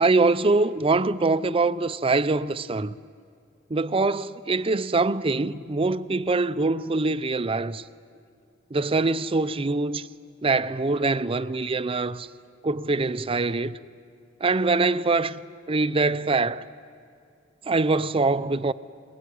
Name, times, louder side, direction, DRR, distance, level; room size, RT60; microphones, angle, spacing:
voice 1, 0.0-2.9 3.7-7.8 8.7-10.1 10.4-12.3 12.6-13.8 14.4-15.4 15.7-16.6 17.7-18.7, right 3 dB, 30° right, 0.6 m, -23 dB
21.5 x 21.5 x 9.9 m
head